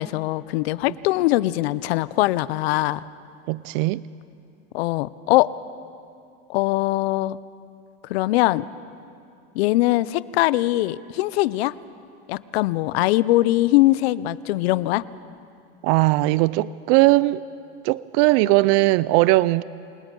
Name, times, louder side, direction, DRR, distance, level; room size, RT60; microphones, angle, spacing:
voice 1, 0.0-3.0 4.7-5.5 6.5-7.4 8.1-8.7 9.5-11.7 12.3-15.0, left 17 dB, 85° left, 18 dB, 0.7 m, -21 dB
voice 2, 3.5-4.0 15.8-17.4 17.8-19.6, right 20 dB, 65° right, 19 dB, 0.5 m, -19 dB
28.0 x 20.0 x 5.4 m, 2.6 s
supercardioid pair, 115°, 30 cm